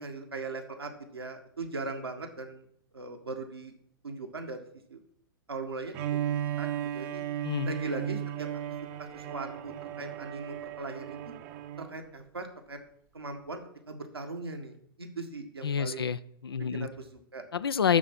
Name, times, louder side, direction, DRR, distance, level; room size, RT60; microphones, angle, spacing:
voice 1, 0.0-2.6 2.9-3.7 4.0-4.6 4.9-5.0 5.5-6.2 6.6-6.7 6.9-7.2 7.6-8.5 9.0-11.3 11.8-12.8 13.1-13.6 13.9-16.1 16.6-17.4, right 3 dB, 80° right, 4 dB, 1.8 m, -39 dB
Bowed string instrument, 5.9-12.0, right 11 dB, 40° right, 0.8 m, -35 dB
voice 2, 7.4-7.7 15.6-16.9 17.5-18.0, left 7 dB, 75° left, 14 dB, 0.5 m, -28 dB
12.0 x 4.2 x 7.4 m, 0.68 s
figure-of-eight pair, 100°, 13 cm